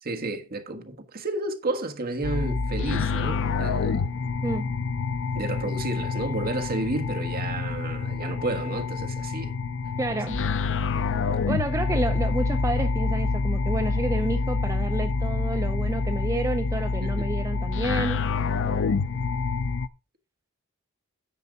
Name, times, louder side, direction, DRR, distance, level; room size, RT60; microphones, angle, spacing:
voice 1, 0.0-4.1 5.3-9.5 17.0-17.3, right 2 dB, 45° right, 1.5 m, -31 dB
sound 1, 2.2-19.9, left 4 dB, 60° left, 0.6 m, -27 dB
voice 2, 10.0-10.4 11.5-18.3, right 2 dB, 15° right, 0.5 m, -30 dB
9.9 x 6.8 x 3.9 m
head